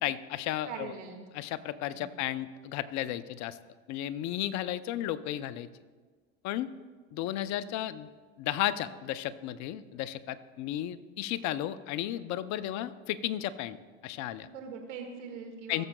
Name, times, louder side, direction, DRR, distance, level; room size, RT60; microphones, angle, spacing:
voice 1, 0.0-0.9 1.3-3.6 3.9-5.7 6.4-6.7 7.1-8.1 8.4-13.8 14.0-14.5 15.7-15.8, left 13 dB, 55° left, 14 dB, 0.6 m, -34 dB
voice 2, 0.7-1.2 1.8-2.1 14.4-15.9, right 6 dB, 90° right, 3 dB, 1.8 m, -42 dB
18.0 x 7.1 x 2.2 m, 1.4 s
supercardioid pair, 100°, 35 cm